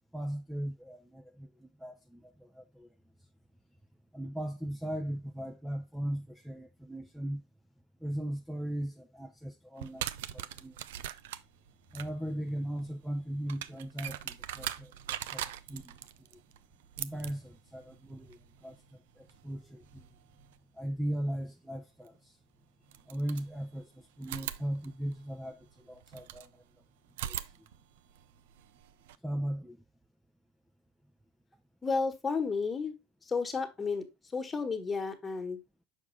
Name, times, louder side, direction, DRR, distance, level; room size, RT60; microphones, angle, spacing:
voice 1, 0.1-2.9 4.1-7.4 8.0-10.1 10.3-10.8 11.9-15.4 15.7-16.0 17.0-18.8 19.2-20.1 20.8-22.3 23.1-23.9 24.2-26.6 27.2-27.4 29.2-29.8, right 1 dB, 5° right, 0.6 m, -38 dB
sound 1, 9.8-20.6 22.1-22.2 22.9-23.9 24.2-26.5 27.1-29.2, right 12 dB, 75° right, 0.4 m, -43 dB
voice 2, 31.8-32.9 33.3-34.1 34.3-35.6, left 4 dB, 20° left, 1.4 m, -32 dB
6.1 x 4.8 x 3.3 m
hypercardioid pair, 90°, 0 cm